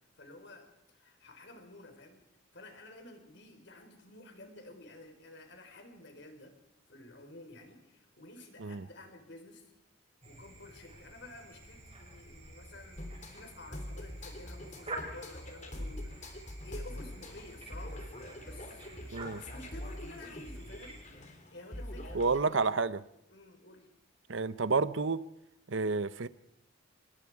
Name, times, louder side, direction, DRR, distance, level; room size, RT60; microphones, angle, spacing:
voice 1, 0.2-2.2 2.5-6.5 6.9-9.7 10.2-18.1 18.4-18.9 19.3-21.0 21.5-22.9 23.3-23.9, left 2 dB, 60° left, 6 dB, 4.3 m, -51 dB
sound 1, 10.2-21.0, right 1 dB, 30° right, 6.4 m, -49 dB
sound 2, 13.0-22.4, left 1 dB, 35° left, 3.2 m, -44 dB
voice 2, 22.1-23.0 24.3-25.2 25.7-26.3, right 4 dB, 70° right, 16 dB, 0.7 m, -30 dB
25.5 x 21.5 x 4.8 m, 0.82 s
head